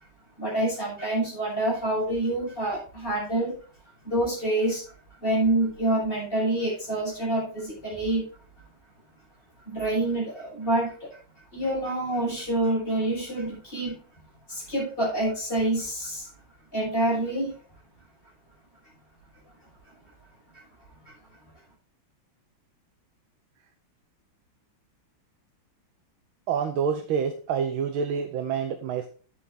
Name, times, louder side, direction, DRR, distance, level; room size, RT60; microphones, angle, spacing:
voice 1, 0.4-3.5 4.0-4.8 5.2-8.3 9.7-11.2 11.5-14.0 14.5-16.3 16.7-17.5 21.0-21.1, right 1 dB, 25° left, -4 dB, 6.5 m, -27 dB
voice 2, 26.5-29.1, right 7 dB, 85° right, 7 dB, 1.7 m, -27 dB
9.4 x 8.1 x 3.8 m, 0.39 s
omnidirectional pair, 2.2 m